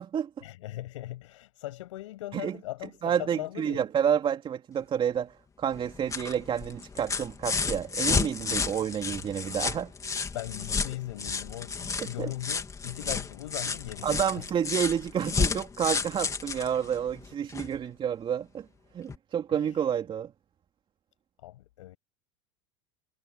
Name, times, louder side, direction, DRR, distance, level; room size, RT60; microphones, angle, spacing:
voice 1, 0.4-3.8 10.3-14.5 17.6-17.9 19.5-19.8 21.4-22.0, left 16 dB, 80° left, 7.3 m, -39 dB
voice 2, 3.0-9.9 12.2-12.3 14.0-18.7 18.9-20.3, right 8 dB, 35° right, 3.1 m, -29 dB
sound 1, 5.7-17.8 19.1-19.2, left 5 dB, 20° left, 3.3 m, -32 dB
supercardioid pair, 105°, 16 cm